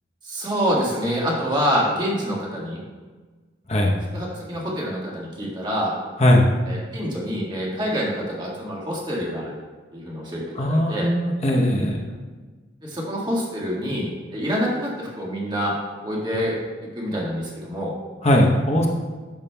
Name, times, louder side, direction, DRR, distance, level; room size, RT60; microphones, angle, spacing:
voice 1, 0.2-2.8 4.1-5.9 6.7-9.6 9.9-11.1 12.8-15.7 16.0-16.6 16.9-17.9, equal, 25° right, -4 dB, 1.7 m, -26 dB
voice 2, 10.6-12.1 18.2-18.9, left 1 dB, 35° left, 0 dB, 0.8 m, -19 dB
11.0 x 7.2 x 2.2 m, 1.4 s
head